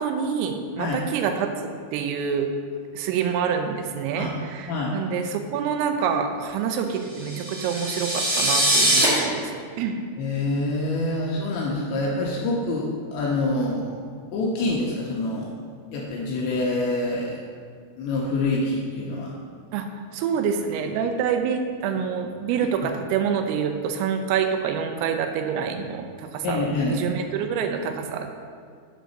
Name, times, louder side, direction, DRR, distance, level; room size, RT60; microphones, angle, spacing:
voice 1, 0.0-1.5 1.9-2.5 2.9-9.5 9.8-10.0 19.7-19.9 20.1-28.3, right 7 dB, 85° right, 6 dB, 3.2 m, -27 dB
sound 1, 7.2-9.0, right 1 dB, 45° right, 1.6 m, -22 dB
voice 2, 10.2-14.0 14.3-15.5 15.9-17.4 18.0-19.3 26.4-27.0, left 2 dB, 80° left, -3 dB, 2.7 m, -26 dB
7.6 x 5.2 x 6.4 m, 2.1 s
omnidirectional pair, 5.9 m